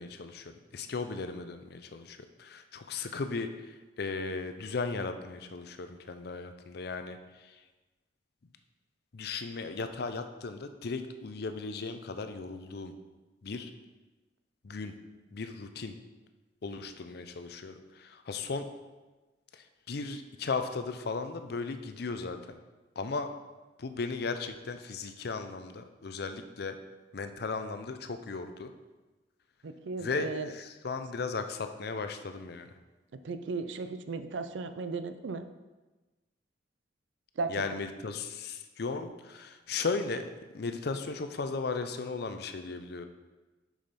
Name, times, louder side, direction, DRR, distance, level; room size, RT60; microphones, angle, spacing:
voice 1, 0.0-3.5 4.0-7.2 9.1-12.9 13.4-13.7 14.6-14.9 15.3-15.9 16.6-18.7 19.5-22.6 23.0-23.3 23.8-26.8 27.1-28.7 30.0-32.7 37.5-43.1, left 4 dB, 60° left, 8 dB, 0.5 m, -36 dB
voice 2, 29.6-30.5 33.2-35.5 37.4-37.6, right 4 dB, 85° right, 10 dB, 0.5 m, -36 dB
6.4 x 6.3 x 4.1 m, 1.2 s
head